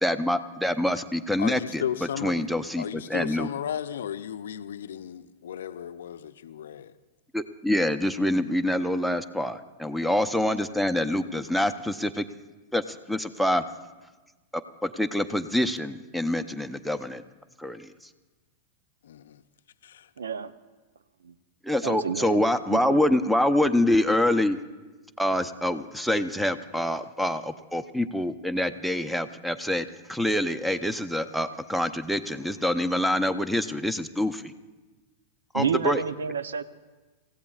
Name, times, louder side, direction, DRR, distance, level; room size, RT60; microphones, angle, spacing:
voice 1, 0.0-1.8 2.2-3.5 7.3-12.3 12.7-13.6 14.8-17.2 17.6-17.9 21.6-24.6 25.2-34.5 35.5-36.0, left 1 dB, ahead, 0.7 m, -26 dB
voice 2, 1.4-2.4 2.8-6.9 10.1-10.2 19.0-19.4 19.8-20.1, left 9 dB, 75° left, 0.5 m, -35 dB
voice 3, 20.2-20.5 21.2-21.4 21.8-23.0 35.5-36.6, right 6 dB, 85° right, 0.6 m, -30 dB
27.5 x 15.5 x 2.4 m
hypercardioid pair, 105°, 0 cm